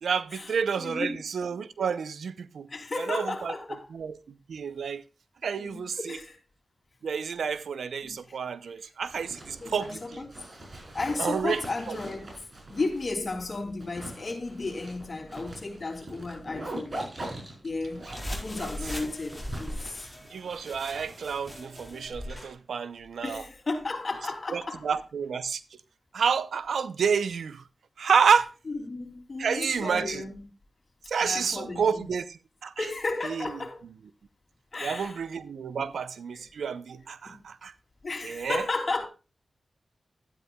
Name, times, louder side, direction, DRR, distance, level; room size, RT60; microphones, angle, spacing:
voice 1, 0.0-2.7 2.9-3.5 3.9-4.2 4.5-5.0 5.4-6.2 7.0-10.2 11.2-11.6 11.9-12.0 18.6-19.0 20.3-23.4 24.5-25.6 26.1-27.6 28.0-28.5 29.4-30.2 31.1-32.8 33.2-33.5 34.8-37.7 38.2-38.6, right 6 dB, 90° right, 0.6 m, -29 dB
voice 2, 0.8-1.2 2.7-3.9 5.6-6.4 8.0-8.4 9.6-10.3 10.9-12.3 12.7-17.0 17.6-20.0 23.2-24.9 28.7-30.4 31.2-32.1 32.8-33.8 34.7-35.2 35.8-35.9 36.3-36.4 37.2-37.4 38.0-39.1, left 3 dB, 55° left, 2.8 m, -34 dB
Zipper (clothing), 9.0-21.5, right 1 dB, 45° right, 5.9 m, -43 dB
sound 1, 18.1-22.5, left 1 dB, 5° left, 4.5 m, -39 dB
12.0 x 9.9 x 2.3 m
cardioid pair, 45°, 0 cm